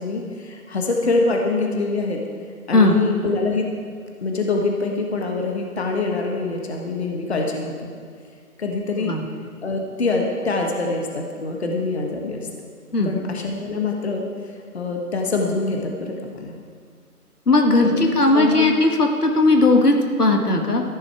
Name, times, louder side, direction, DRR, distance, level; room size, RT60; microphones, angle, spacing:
voice 1, 0.0-2.2 2.7-3.7 4.2-7.7 8.6-9.1 9.6-12.5 13.0-14.2 14.7-16.5 17.8-18.0 18.3-18.7, left 3 dB, 45° left, 1 dB, 1.4 m, -24 dB
voice 2, 17.5-20.8, left 2 dB, 80° left, 3 dB, 1.8 m, -17 dB
14.0 x 10.5 x 4.7 m, 2.1 s
figure-of-eight pair, 160°, 45 cm